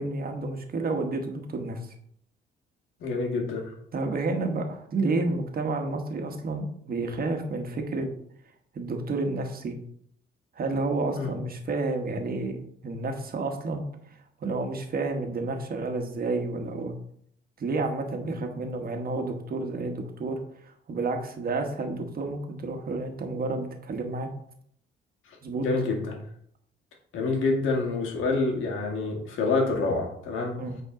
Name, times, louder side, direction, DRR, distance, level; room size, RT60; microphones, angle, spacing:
voice 1, 0.0-1.8 3.9-8.1 8.7-9.8 10.5-13.8 14.4-16.9 17.6-24.3 25.4-25.7 30.6-30.8, right 3 dB, 50° right, 4 dB, 1.4 m, -30 dB
voice 2, 3.0-3.7 11.1-11.3 25.3-25.4 25.6-26.2 27.1-30.6, left 3 dB, 80° left, 1 dB, 1.9 m, -27 dB
8.7 x 4.1 x 3.8 m, 0.65 s
cardioid pair, 90°, 20 cm